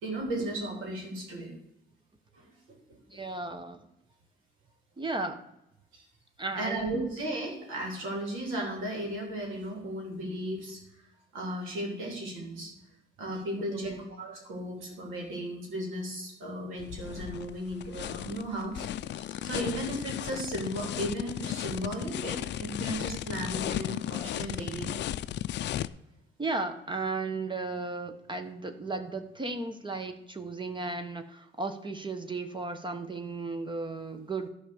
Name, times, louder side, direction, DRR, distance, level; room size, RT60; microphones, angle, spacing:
voice 1, 0.0-1.5 2.3-2.5 2.9-3.2 5.9-6.0 6.6-10.8 11.3-12.7 13.2-18.8 19.1-25.1, right 1 dB, 90° right, 0 dB, 3.5 m, -35 dB
voice 2, 3.1-3.8 5.0-5.4 6.4-7.2 13.7-14.0 26.4-34.5, right 3 dB, 25° right, 8 dB, 1.0 m, -35 dB
sound 1, 16.8-25.9, left 12 dB, 60° left, 0.4 m, -35 dB
11.5 x 4.9 x 7.0 m, 0.85 s
cardioid pair, 90°, 20 cm